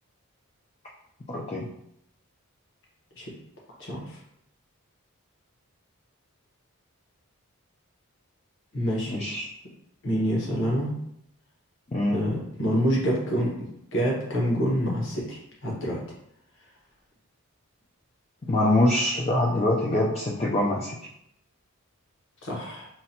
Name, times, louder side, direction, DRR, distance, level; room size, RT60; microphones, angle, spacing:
voice 1, 1.3-1.7 9.1-9.5 11.9-12.2 18.4-21.0, left 1 dB, 25° left, -3 dB, 0.4 m, -24 dB
voice 2, 3.8-4.2 8.7-9.2 10.0-11.0 12.1-13.6 13.9-16.0 22.4-22.9, equal, 55° left, -3 dB, 1.0 m, -27 dB
5.7 x 2.2 x 2.8 m, 0.75 s
head